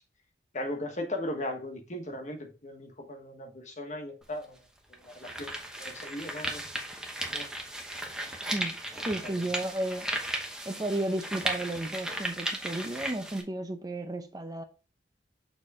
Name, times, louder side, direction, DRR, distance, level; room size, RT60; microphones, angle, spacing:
voice 1, 0.5-4.6 5.0-5.5 5.8-6.6 7.3-7.5 9.0-9.5, left 1 dB, 45° left, 1.3 m, -37 dB
sound 1, 4.2-4.3 4.9-13.4, right 1 dB, 5° right, 1.0 m, -36 dB
voice 2, 9.0-10.1 10.7-14.6, right 1 dB, 20° right, 0.5 m, -33 dB
6.9 x 4.2 x 3.5 m
head